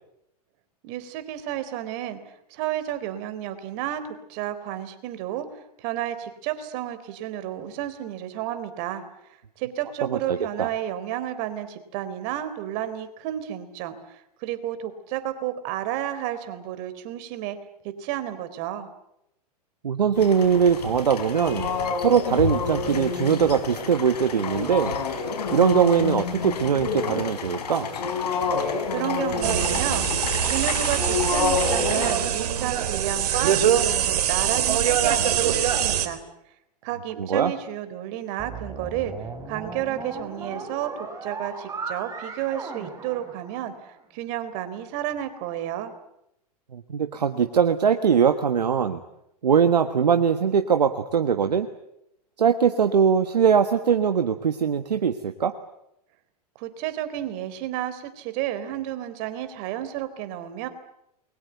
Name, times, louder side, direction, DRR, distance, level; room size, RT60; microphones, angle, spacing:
voice 1, 0.8-2.2 2.5-9.0 9.6-17.6 17.8-18.9 28.9-30.1 30.4-36.2 36.8-39.1 39.5-40.9 41.2-45.9 56.6-60.7, right 12 dB, 50° right, 11 dB, 3.9 m, -31 dB
voice 2, 10.0-10.7 19.8-21.7 22.0-25.0 25.5-27.9 37.2-37.5 46.7-49.0 49.4-51.7 52.4-55.5, right 7 dB, 85° right, 8 dB, 1.5 m, -21 dB
sound 1, 20.1-32.1, left 5 dB, 75° left, 5.6 m, -28 dB
sound 2, 29.4-36.1, right 10 dB, 70° right, 3.5 m, -23 dB
sound 3, 38.4-43.9, right 4 dB, 15° right, 6.3 m, -37 dB
28.5 x 22.5 x 8.2 m, 0.80 s
hypercardioid pair, 110°, 21 cm